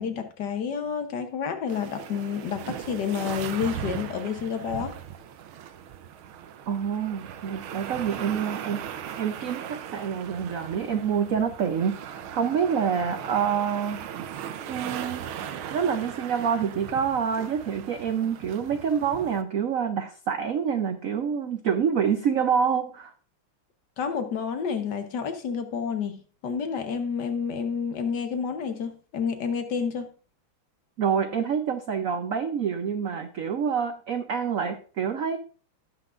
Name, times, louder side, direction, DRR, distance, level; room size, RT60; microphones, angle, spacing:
voice 1, 0.0-5.0 24.0-30.1, left 6 dB, 60° left, 1.5 m, -29 dB
sound 1, 1.7-19.4, right 9 dB, 85° right, 1.6 m, -38 dB
voice 2, 6.7-14.1 14.7-15.3 15.7-23.1 31.0-35.4, right 7 dB, 70° right, 0.8 m, -27 dB
17.5 x 5.9 x 2.5 m
omnidirectional pair, 2.3 m